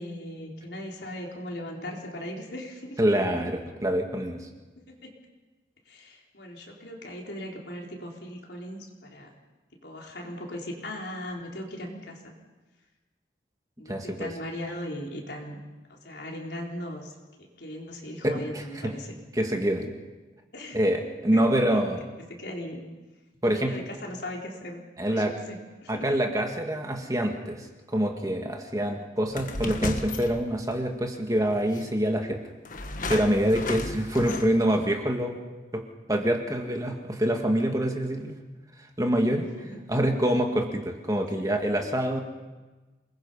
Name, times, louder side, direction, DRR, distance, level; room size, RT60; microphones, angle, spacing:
voice 1, 0.0-3.0 3.3-3.4 4.9-5.1 5.9-9.3 9.8-12.3 13.8-15.6 15.9-17.1 17.6-19.2 20.5-20.9 21.3-21.8 22.3-22.8 23.4-24.8 25.1-26.2 34.4-34.5 39.3-39.8 41.4-41.5, left 1 dB, 75° left, -1 dB, 4.2 m, -38 dB
voice 2, 3.0-4.5 13.9-14.3 18.2-18.6 19.4-19.9 20.7-22.0 23.4-23.8 25.0-25.3 25.9-27.7 27.9-32.4 33.1-35.4 35.7-35.8 36.1-38.3 39.0-39.5 39.9-42.2, right 1 dB, 20° right, 3 dB, 1.9 m, -26 dB
sound 1, 29.3-30.9 31.7-31.9 32.7-34.8, left 2 dB, 50° left, 1.5 m, -34 dB
28.0 x 20.5 x 5.6 m, 1.2 s
head